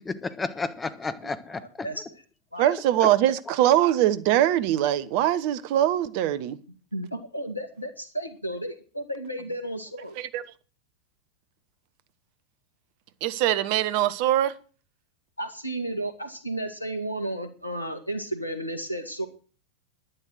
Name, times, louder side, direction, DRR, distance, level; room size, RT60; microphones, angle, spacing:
voice 1, 0.0-2.0 3.0-3.1, left 4 dB, 15° left, 1.3 m, -32 dB
voice 2, 1.6-2.0 2.5-2.7 6.9-10.2 15.4-19.3, right 1 dB, 85° left, 1.9 m, -33 dB
voice 3, 2.6-6.6 10.2-10.4 13.2-14.5, right 12 dB, 45° right, 1.0 m, -22 dB
11.0 x 11.0 x 6.3 m
figure-of-eight pair, 90°, 0 cm